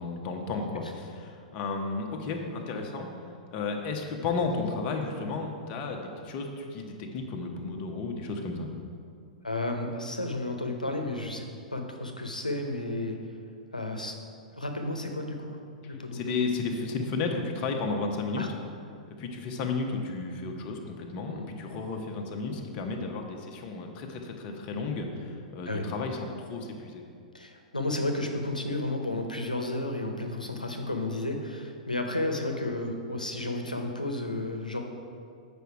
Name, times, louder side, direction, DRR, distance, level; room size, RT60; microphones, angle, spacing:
voice 1, 0.0-3.1 3.5-8.7 16.1-18.4 19.1-27.0, left 4 dB, 35° left, 2 dB, 1.0 m, -33 dB
voice 2, 9.4-11.5 11.7-13.2 13.7-14.2 14.5-15.6 15.9-16.4 18.4-18.5 21.3-21.6 25.7-25.9 27.3-34.8, left 2 dB, 85° left, 4 dB, 0.8 m, -32 dB
8.1 x 5.2 x 4.7 m, 2.3 s
figure-of-eight pair, 105°, 4 cm